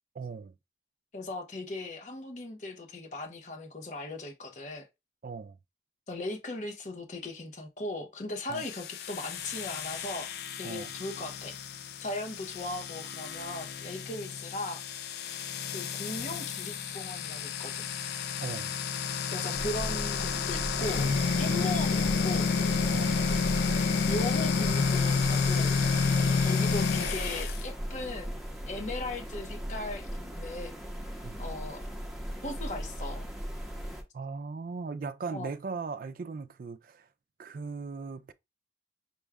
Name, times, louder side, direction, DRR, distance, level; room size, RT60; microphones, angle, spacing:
voice 1, 0.2-0.6 5.2-5.6 8.5-8.6 10.6-10.9 18.4-18.8 21.5-21.7 22.9-23.2 26.2-26.4 31.2-31.4 34.1-37.1 37.4-38.3, right 4 dB, 50° right, 0.3 m, -38 dB
voice 2, 1.1-4.9 6.1-10.3 10.6-11.6 12.0-14.8 15.7-17.9 19.3-21.1 21.4-22.5 24.1-25.8 26.4-28.3 28.7-30.8 31.4-31.8 32.4-33.3 35.3-35.5, left 2 dB, 40° left, 0.8 m, -38 dB
sound 1, 8.5-27.6, left 5 dB, 60° left, 0.3 m, -30 dB
sound 2, 19.5-34.0, equal, ahead, 0.8 m, -38 dB
Insect, 20.8-27.4, left 3 dB, 80° left, 1.0 m, -37 dB
6.1 x 2.3 x 3.5 m
head